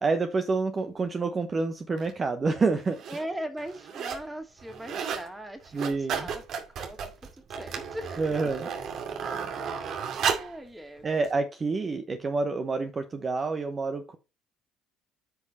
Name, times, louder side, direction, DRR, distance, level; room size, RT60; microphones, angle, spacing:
voice 1, 0.0-3.0 5.7-6.3 8.2-8.7 11.0-14.2, right 4 dB, 35° right, 1.0 m, -28 dB
sound 1, 2.0-2.1 2.8-3.2 3.6-4.3 4.6-5.3 5.6-10.6 11.2-11.3, right 7 dB, 60° right, 2.4 m, -33 dB
voice 2, 3.1-6.4 6.7-7.0 7.5-8.7 9.7-11.1, right 1 dB, 10° right, 2.3 m, -40 dB
9.3 x 5.3 x 4.1 m
supercardioid pair, 75°, 0 cm